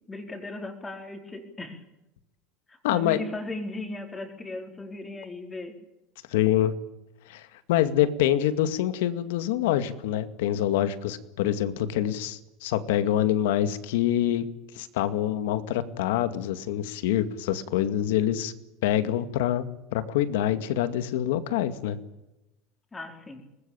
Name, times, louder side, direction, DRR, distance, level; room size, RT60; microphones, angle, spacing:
voice 1, 0.1-1.8 2.7-5.7 22.9-23.4, left 2 dB, 15° left, 4 dB, 4.7 m, -37 dB
voice 2, 2.8-3.2 6.3-6.7 7.3-14.4 14.7-18.5 18.8-22.0, left 11 dB, 90° left, 11 dB, 2.3 m, -26 dB
24.0 x 20.5 x 9.0 m, 0.95 s
supercardioid pair, 145°, 0 cm